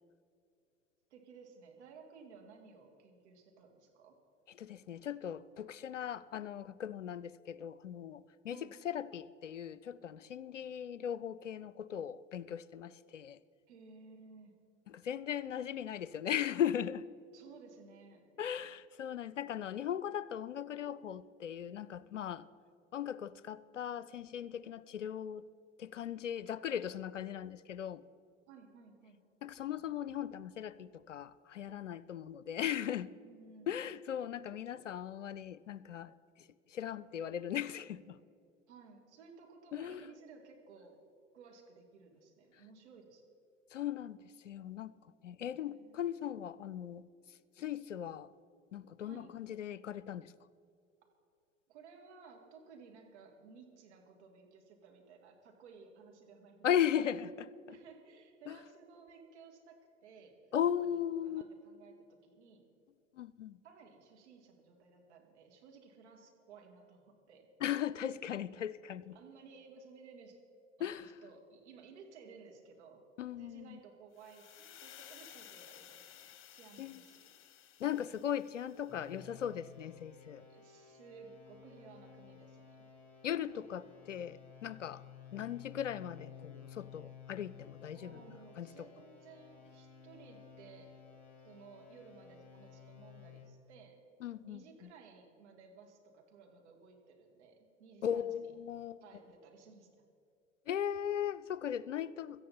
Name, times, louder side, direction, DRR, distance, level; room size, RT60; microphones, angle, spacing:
voice 1, 1.1-4.2 8.5-8.7 13.7-14.6 17.3-18.3 28.5-29.2 33.2-33.7 38.7-41.0 41.3-43.2 45.6-46.3 49.0-49.3 51.7-56.7 56.9-57.2 57.7-60.5 60.8-62.6 63.6-67.5 69.1-70.4 70.8-73.0 73.4-77.3 80.5-82.8 87.9-91.0 91.4-94.0 94.4-98.5 99.0-99.9, right 5 dB, 65° right, 2 dB, 2.5 m, -57 dB
voice 2, 4.6-13.4 14.9-17.1 18.4-22.5 22.9-25.5 25.8-28.0 29.4-33.1 33.7-38.2 39.7-40.1 43.7-44.9 45.2-47.0 47.6-48.3 48.7-50.3 56.6-57.3 57.7-57.8 58.5-58.6 60.5-61.4 63.1-63.6 67.6-69.2 70.8-71.1 73.2-73.8 76.8-77.0 77.8-80.5 83.2-85.0 85.3-88.2 88.6-88.7 94.2-94.9 98.0-99.0 100.7-102.4, left 9 dB, 85° left, 18 dB, 0.5 m, -38 dB
sound 1, 74.2-79.2, left 11 dB, 35° left, 1.3 m, -56 dB
sound 2, 78.9-93.4, left 7 dB, 5° left, 4.1 m, -55 dB
17.0 x 13.5 x 4.3 m, 2.5 s
figure-of-eight pair, 70°, 36 cm